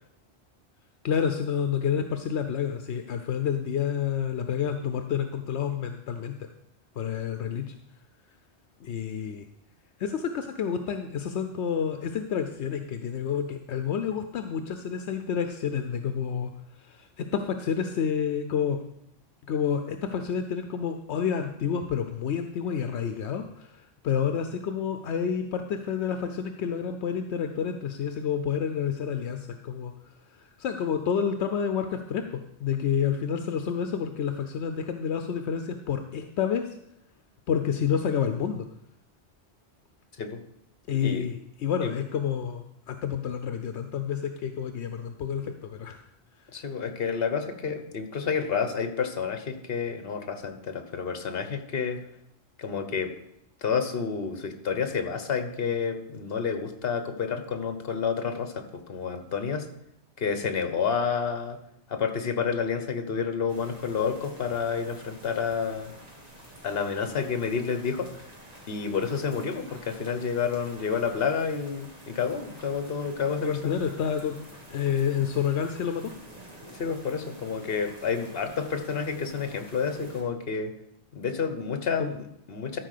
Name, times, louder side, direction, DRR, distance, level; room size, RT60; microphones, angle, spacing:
voice 1, 1.0-6.5 7.0-7.7 8.8-9.4 10.0-16.5 16.9-18.8 19.5-29.9 30.4-36.7 37.5-38.7 40.9-46.0 73.4-74.4 74.7-76.1 82.0-82.1, left 7 dB, 80° left, 7 dB, 1.0 m, -29 dB
voice 2, 46.5-52.0 52.6-53.1 53.6-59.7 60.2-61.6 61.9-65.9 66.6-68.1 68.7-73.8 76.7-80.7 81.1-82.8, left 6 dB, 60° left, 8 dB, 1.3 m, -29 dB
sound 1, 63.5-80.2, right 1 dB, 35° right, 2.4 m, -49 dB
13.0 x 4.7 x 6.6 m, 0.76 s
omnidirectional pair, 1.1 m